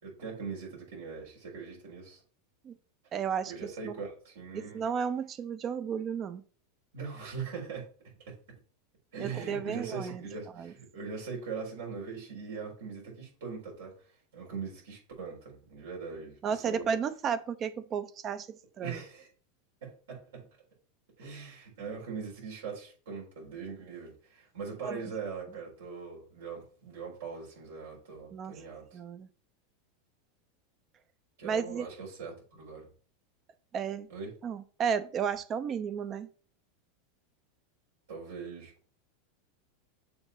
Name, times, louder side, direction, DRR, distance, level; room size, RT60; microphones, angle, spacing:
voice 1, 0.0-2.2 3.5-4.8 6.9-7.9 8.2-8.3 9.1-13.9 14.3-16.9 18.8-19.3 19.8-20.5 21.2-29.0 31.4-32.9 34.1-34.3 38.1-38.7, right 5 dB, 80° right, 4.3 m, -41 dB
voice 2, 3.1-3.5 3.8-3.9 4.5-6.4 9.2-10.2 10.6-10.7 16.4-19.0 24.8-25.0 28.3-28.5 28.9-29.3 31.4-31.9 33.7-34.1 34.4-36.3, right 7 dB, 35° right, 0.7 m, -33 dB
7.0 x 3.9 x 5.6 m
hypercardioid pair, 105°, 0 cm